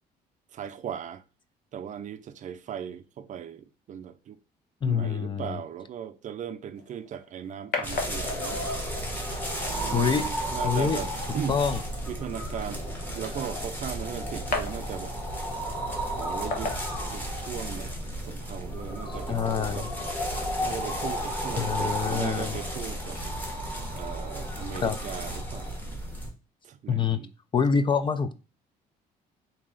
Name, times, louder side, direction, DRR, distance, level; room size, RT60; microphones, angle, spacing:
voice 1, 0.5-1.2 1.7-4.4 4.9-8.6 9.7-11.6 12.1-12.8 13.1-15.2 16.2-16.8 17.1-17.9 18.2-19.9 20.6-23.2 23.9-25.8 26.6-27.3, right 8 dB, 50° right, 0.5 m, -38 dB
voice 2, 4.8-5.6 9.9-10.2 10.6-11.0 11.5-11.8 19.3-19.9 21.6-22.6 24.8-25.0 26.9-27.2 27.5-28.4, left 6 dB, 30° left, 0.5 m, -26 dB
sound 1, 6.8-17.7, left 4 dB, 65° left, 1.1 m, -39 dB
sound 2, 7.8-26.3, equal, 10° left, 1.3 m, -33 dB
4.1 x 2.8 x 3.8 m
cardioid pair, 110°, 17 cm